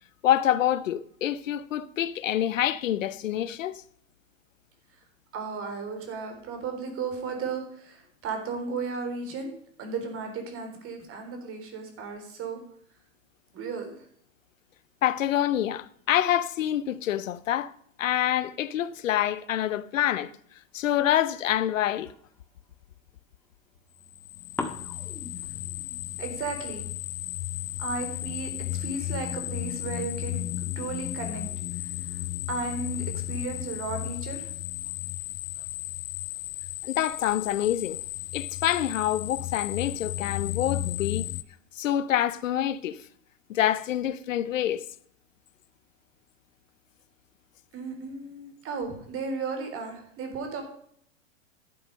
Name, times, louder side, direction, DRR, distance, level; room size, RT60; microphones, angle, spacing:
voice 1, 0.2-3.8 15.0-17.7 18.0-20.3 20.7-22.1 36.8-38.0 38.3-41.3 41.8-43.0 43.5-44.9, left 11 dB, 75° left, 0.8 m, -26 dB
voice 2, 5.3-9.5 9.8-12.6 13.5-14.1 26.2-26.8 27.8-31.5 31.8-34.5 47.7-50.6, right 4 dB, 35° right, 3.7 m, -35 dB
sound 1, 20.6-22.8 23.3-24.2 24.6-30.0, left 2 dB, 5° left, 1.5 m, -44 dB
sound 2, 24.1-41.4, left 15 dB, 25° left, 0.4 m, -34 dB
11.5 x 7.7 x 5.3 m
hypercardioid pair, 105°, 39 cm